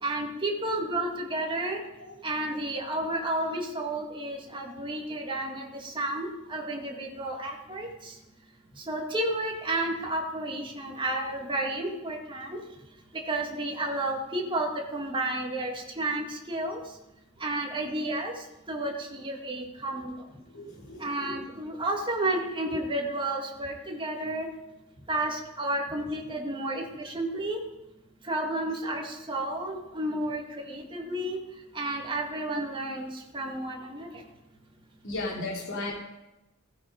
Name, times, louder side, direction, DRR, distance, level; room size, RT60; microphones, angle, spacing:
voice 1, 0.0-1.8 2.2-8.1 8.9-12.6 13.3-16.8 17.4-18.3 18.7-20.1 21.0-24.5 25.1-27.6 28.3-31.4 31.7-34.1, right 1 dB, 25° right, 0 dB, 2.1 m, -31 dB
voice 2, 20.3-21.4 26.9-27.0 35.0-35.9, left 2 dB, 60° left, -2 dB, 3.4 m, -36 dB
15.5 x 13.5 x 5.2 m, 0.94 s
head